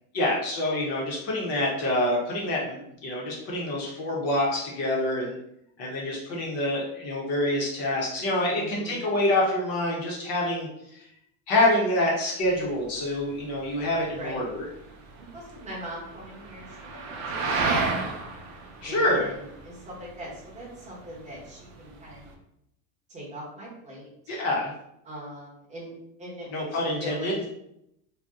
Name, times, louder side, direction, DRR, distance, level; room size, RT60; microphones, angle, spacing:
voice 1, 0.1-5.3 5.8-10.7 11.5-14.4 18.8-19.3 24.3-24.7 26.5-27.3, left 1 dB, 35° left, -3 dB, 0.5 m, -26 dB
voice 2, 8.5-9.0 14.1-14.4 15.2-18.1 18.8-22.2 23.1-24.1 25.0-25.9 26.2-27.5, right 1 dB, 15° right, -6 dB, 0.8 m, -41 dB
sound 1, 12.4-22.3, right 3 dB, 45° right, 0.6 m, -34 dB
2.6 x 2.0 x 3.4 m, 0.79 s
cardioid pair, 170°, 44 cm